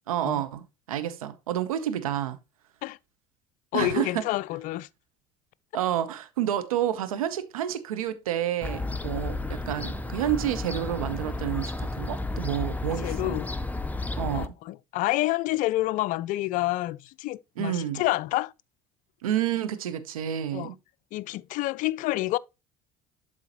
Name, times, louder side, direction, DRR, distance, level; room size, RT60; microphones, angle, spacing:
voice 1, 0.1-2.4 3.7-4.3 5.7-13.4 14.2-14.5 17.6-18.0 19.2-20.7, right 11 dB, 75° right, 0.8 m, -29 dB
voice 2, 3.7-4.9 12.9-13.5 14.3-18.5 20.5-20.7 21.1-22.4, left 17 dB, 45° left, 0.4 m, -28 dB
Fowl / Gull seagull, 8.6-14.5, left 2 dB, 10° left, 0.6 m, -32 dB
11.5 x 4.0 x 2.9 m
figure-of-eight pair, 60°, 18 cm